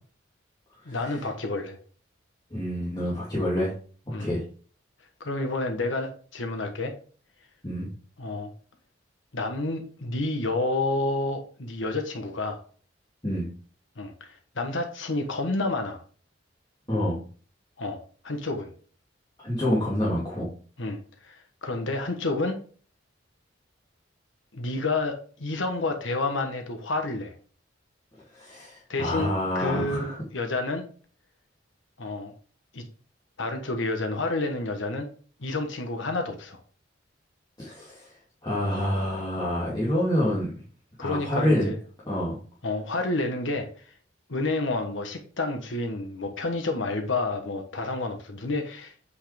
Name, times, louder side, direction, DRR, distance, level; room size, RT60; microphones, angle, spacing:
voice 1, 0.8-1.8 4.1-4.3 5.2-6.9 8.2-8.5 9.3-12.6 14.0-14.3 14.6-16.0 17.8-18.7 20.8-22.6 24.5-27.3 28.9-30.8 32.0-32.3 32.7-32.8 33.4-35.1 35.4-36.6 41.0-41.8 42.6-43.7 44.3-48.9, left 2 dB, 75° left, 5 dB, 1.3 m, -29 dB
voice 2, 2.5-3.7 4.1-4.4 7.6-7.9 13.2-13.5 16.9-17.2 19.4-20.5 28.3-30.2 37.6-38.1 38.4-40.5 41.0-41.7 42.1-42.4, left 1 dB, 20° left, -8 dB, 2.6 m, -27 dB
8.2 x 5.6 x 3.4 m, 0.41 s
head